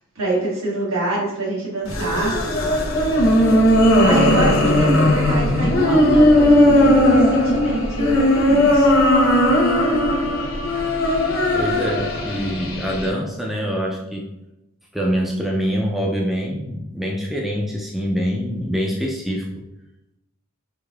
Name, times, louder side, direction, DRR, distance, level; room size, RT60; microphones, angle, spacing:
voice 1, 0.1-2.4 4.0-8.9, right 2 dB, 80° right, -5 dB, 1.4 m, -24 dB
sound 1, 1.9-13.1, left 1 dB, 65° left, 0.8 m, -17 dB
voice 2, 11.5-14.3 14.9-19.5, equal, ahead, -2 dB, 0.3 m, -24 dB
4.8 x 2.7 x 2.3 m, 0.91 s
head